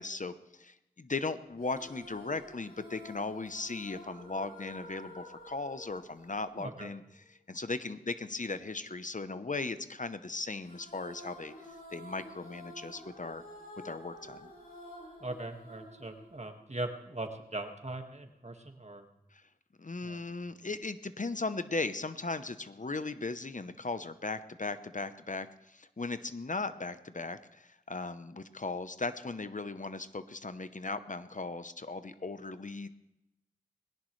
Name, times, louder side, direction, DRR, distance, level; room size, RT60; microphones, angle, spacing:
voice 1, 0.0-7.0 7.5-11.5 11.9-13.4 13.8-14.5 19.3-19.4 19.8-32.9, left 3 dB, 55° left, 12 dB, 0.8 m, -37 dB
sound 1, 1.6-7.1 10.6-17.0, left 1 dB, 90° left, 7.6 m, -50 dB
voice 2, 6.6-6.9 15.2-19.1 20.0-20.3, right 2 dB, 50° right, 5 dB, 1.7 m, -40 dB
20.5 x 17.0 x 3.2 m, 0.89 s
wide cardioid pair, 45°, 15 cm